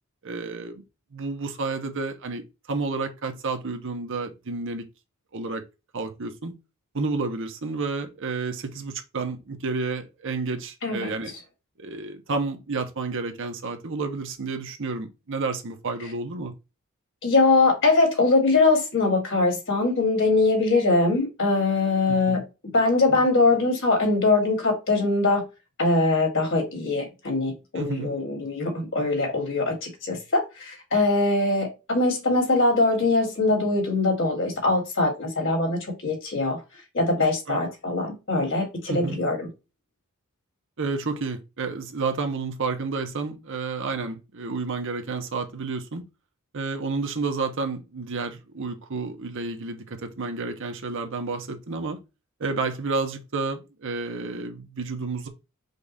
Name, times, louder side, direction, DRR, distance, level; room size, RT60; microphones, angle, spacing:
voice 1, 0.2-0.8 1.1-4.8 5.3-5.6 5.9-6.5 6.9-11.3 11.8-16.5 22.1-22.4 27.7-28.1 37.5-37.6 38.9-39.2 40.8-46.0 46.5-52.0 52.4-55.3, right 4 dB, 60° right, 0.9 m, -30 dB
voice 2, 17.2-25.4 25.8-36.6 36.9-39.5, left 3 dB, 60° left, 2.2 m, -22 dB
5.2 x 2.5 x 3.9 m
head